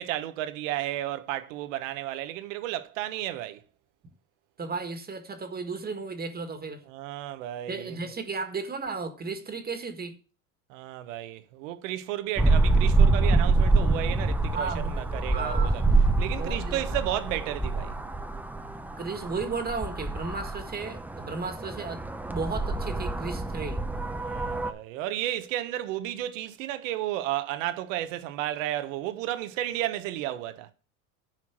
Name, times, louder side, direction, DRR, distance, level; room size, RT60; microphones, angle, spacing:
voice 1, 0.0-3.6 6.9-8.0 10.7-15.8 16.2-17.9 24.2-30.7, right 13 dB, 80° right, 1.3 m, -33 dB
voice 2, 4.6-6.8 7.7-10.2 14.5-15.0 15.3-15.8 16.4-17.0 19.0-23.8, right 4 dB, 25° right, 1.7 m, -34 dB
sound 1, 12.4-24.7, right 3 dB, 5° right, 0.7 m, -26 dB
10.5 x 4.7 x 6.1 m
supercardioid pair, 110°, 37 cm